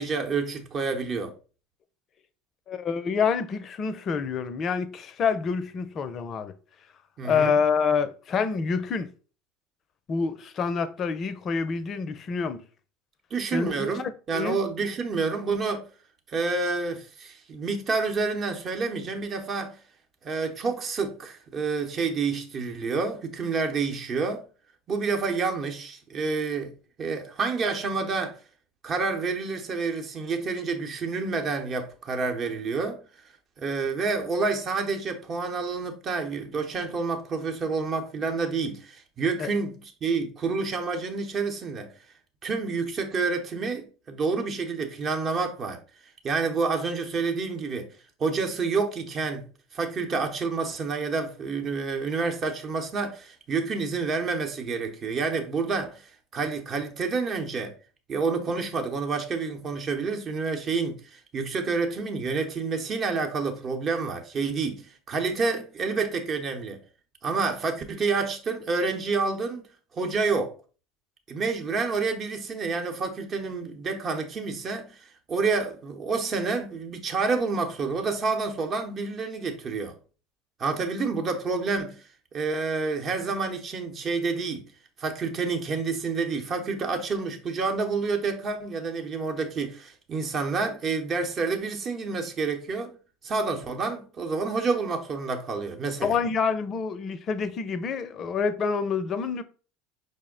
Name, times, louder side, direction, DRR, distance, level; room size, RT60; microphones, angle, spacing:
voice 1, 0.0-1.3 7.2-7.6 13.3-15.9 16.3-19.8 20.2-24.4 24.9-26.7 27.0-28.4 28.8-33.0 33.6-41.9 42.4-45.8 46.2-47.9 48.2-49.4 49.7-56.0 56.3-57.7 58.1-66.8 67.2-69.6 69.9-70.5 71.3-75.0 75.3-79.9 80.6-82.0 82.3-84.6 85.0-92.9 93.2-96.2, right 4 dB, 40° right, 0.9 m, -28 dB
voice 2, 2.7-6.5 7.2-9.1 10.1-12.6 13.5-14.6 39.4-39.5 96.0-99.4, left 5 dB, 40° left, 0.5 m, -27 dB
5.2 x 2.1 x 3.7 m
hypercardioid pair, 90°, 0 cm